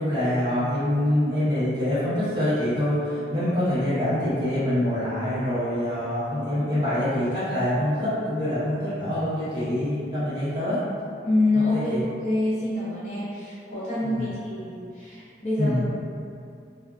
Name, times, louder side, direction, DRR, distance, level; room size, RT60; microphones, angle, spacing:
voice 1, 0.0-10.8 11.7-12.0 14.0-14.2 15.6-15.8, left 1 dB, 25° right, -14 dB, 1.0 m, -25 dB
voice 2, 11.2-15.8, left 2 dB, 45° left, -12 dB, 0.9 m, -26 dB
2.5 x 2.4 x 2.3 m, 2.4 s
head